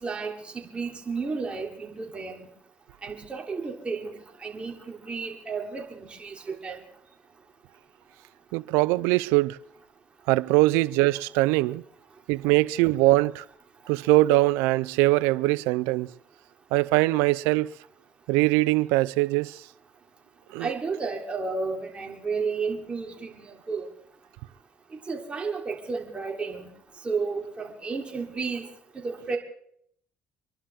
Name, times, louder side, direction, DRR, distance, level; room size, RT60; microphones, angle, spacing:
voice 1, 0.0-2.5 3.0-4.1 4.4-6.8 20.6-23.9 25.1-26.7 27.0-28.7 29.0-29.4, right 4 dB, 30° right, 3.4 m, -32 dB
voice 2, 8.5-9.6 10.3-11.8 12.3-13.4 13.9-16.1 16.7-17.7 18.3-19.6 20.5-20.7, right 20 dB, 85° right, 0.5 m, -22 dB
26.0 x 11.5 x 3.7 m
supercardioid pair, 75°, 4 cm